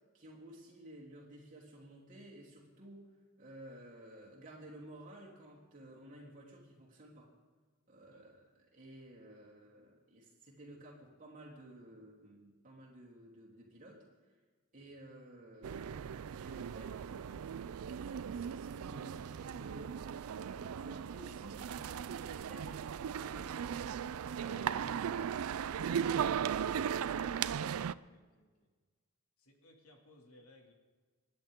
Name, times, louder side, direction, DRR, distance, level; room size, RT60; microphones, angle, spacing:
voice 1, 0.1-7.3 7.9-14.0 14.7-20.0 20.4-23.9 24.4-25.0, right 1 dB, 35° right, -4 dB, 3.3 m, -54 dB
sound 1, 15.6-27.9, right 8 dB, 80° right, 0.4 m, -37 dB
voice 2, 27.4-28.7 29.4-30.7, left 1 dB, 80° left, 1 dB, 2.5 m, -63 dB
26.0 x 10.5 x 3.7 m, 1.4 s
head